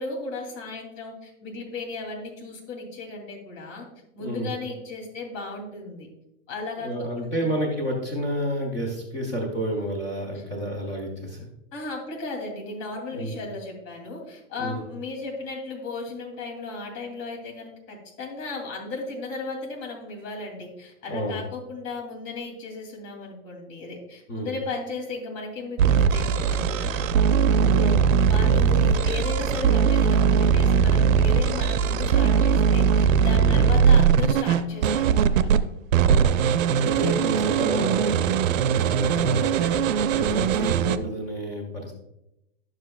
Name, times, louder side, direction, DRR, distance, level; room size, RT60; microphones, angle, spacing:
voice 1, 0.0-3.9 4.1-6.1 6.5-7.4 11.7-27.1 28.2-35.4, left 3 dB, 30° left, 0 dB, 2.5 m, -35 dB
voice 2, 4.2-4.5 6.8-11.5 13.1-13.4 14.6-14.8 21.1-21.4 24.3-24.5 27.5-28.1 33.4-33.7 36.1-36.5 36.8-41.9, right 1 dB, 10° left, -3 dB, 0.3 m, -30 dB
sound 1, 25.8-35.6 35.9-41.0, right 7 dB, 75° right, 0.6 m, -20 dB
10.5 x 7.5 x 2.2 m, 0.85 s
hypercardioid pair, 150°, 39 cm